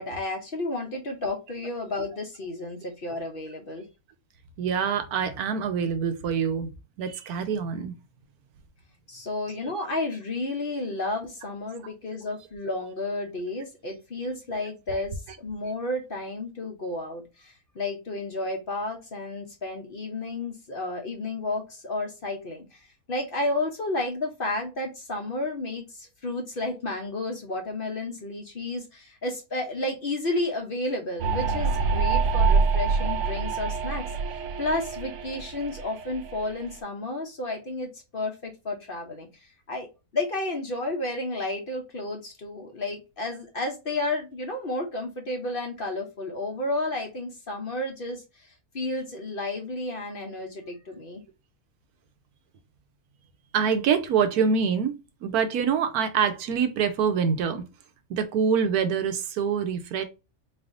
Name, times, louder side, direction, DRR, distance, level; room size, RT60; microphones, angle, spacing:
voice 1, 0.0-3.8 9.1-34.0 34.6-39.9 40.1-48.5 48.7-51.2, left 2 dB, 45° left, 0.8 m, -32 dB
voice 2, 4.6-6.7 7.0-7.9 53.5-54.9 55.2-57.6 58.1-60.0, right 6 dB, 90° right, 1.2 m, -25 dB
sound 1, 31.2-36.7, right 4 dB, 65° right, 0.8 m, -26 dB
4.0 x 3.4 x 2.5 m
omnidirectional pair, 1.6 m